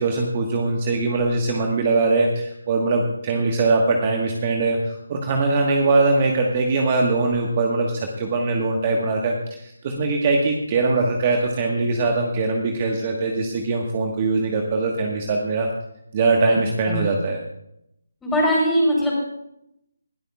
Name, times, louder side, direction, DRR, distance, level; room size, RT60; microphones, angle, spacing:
voice 1, 0.0-15.7 16.1-17.4, right 3 dB, 30° right, 1 dB, 1.4 m, -22 dB
voice 2, 18.2-19.1, equal, 5° left, -4 dB, 4.2 m, -20 dB
20.5 x 13.0 x 2.4 m, 0.80 s
figure-of-eight pair, 155°, 0 cm